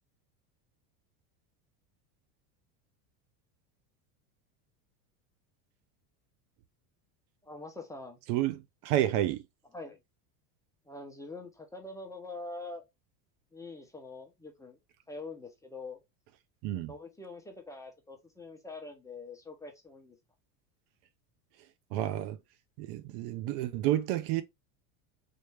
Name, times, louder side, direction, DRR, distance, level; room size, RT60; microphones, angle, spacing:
voice 1, 7.4-8.2 9.7-10.0 10.9-12.8 13.5-14.8 15.1-16.0 16.9-20.2, left 3 dB, 5° left, 0.7 m, -44 dB
voice 2, 8.3-9.4 16.6-16.9 21.9-22.4 22.8-24.4, right 13 dB, 60° right, 0.5 m, -30 dB
3.3 x 2.7 x 3.2 m
supercardioid pair, 120°, 46 cm